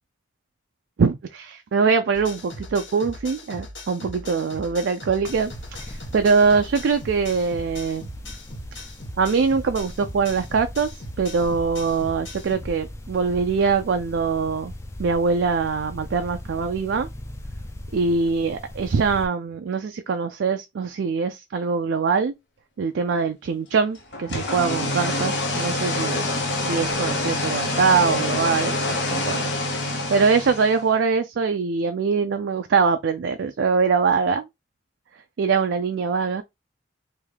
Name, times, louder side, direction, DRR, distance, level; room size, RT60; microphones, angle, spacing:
voice 1, 1.0-8.1 9.2-10.9 11.2-14.7 15.0-17.1 17.9-22.4 22.8-26.3 26.6-29.4 29.7-34.4 35.4-36.4, right 5 dB, 70° right, 0.4 m, -23 dB
sound 1, 2.1-12.6, left 1 dB, 85° left, 2.0 m, -39 dB
sound 2, 5.2-19.3, left 1 dB, 15° left, 0.4 m, -40 dB
sound 3, 24.1-30.9, left 2 dB, 65° left, 0.8 m, -26 dB
3.5 x 2.7 x 3.2 m
head